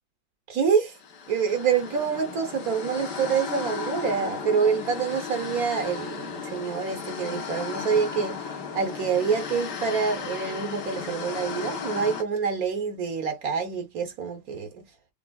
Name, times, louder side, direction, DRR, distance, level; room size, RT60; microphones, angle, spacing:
voice 1, 0.5-1.0 1.3-8.5 8.7-14.9, right 6 dB, 60° right, 1.1 m, -26 dB
sound 1, 1.0-12.2, left 6 dB, 65° left, 1.5 m, -35 dB
6.9 x 2.9 x 2.2 m
omnidirectional pair, 2.0 m